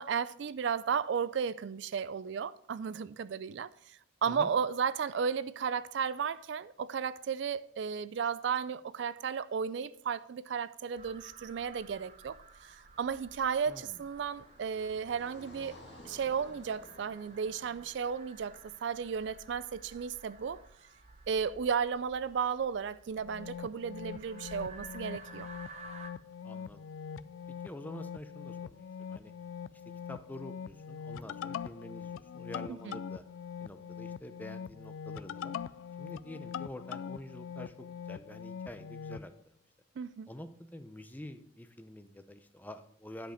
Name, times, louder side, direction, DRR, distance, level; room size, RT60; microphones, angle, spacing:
voice 1, 0.0-12.4 12.6-15.8 16.1-20.6 21.3-25.5 32.7-33.0 40.0-40.3, right 6 dB, 65° right, 0.3 m, -34 dB
sound 1, 11.0-26.1, right 3 dB, 35° right, 0.8 m, -54 dB
Car passing by, 12.5-19.8, left 1 dB, 60° left, 1.9 m, -56 dB
voice 2, 13.7-14.0 26.4-26.8 27.5-29.3 29.7-33.2 33.6-35.5 36.0-39.6 40.3-43.3, left 1 dB, 10° left, 0.5 m, -47 dB
sound 2, 23.2-39.3, left 7 dB, 85° left, 0.3 m, -43 dB
10.5 x 5.3 x 5.0 m
head